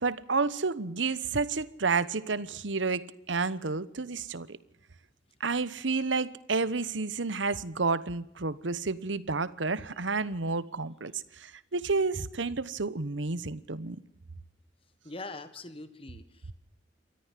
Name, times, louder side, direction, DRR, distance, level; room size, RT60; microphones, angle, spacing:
voice 1, 0.0-4.6 5.4-14.0, right 4 dB, 85° right, 1.1 m, -30 dB
voice 2, 15.0-16.5, left 2 dB, 30° left, 1.4 m, -43 dB
28.0 x 14.0 x 7.5 m
head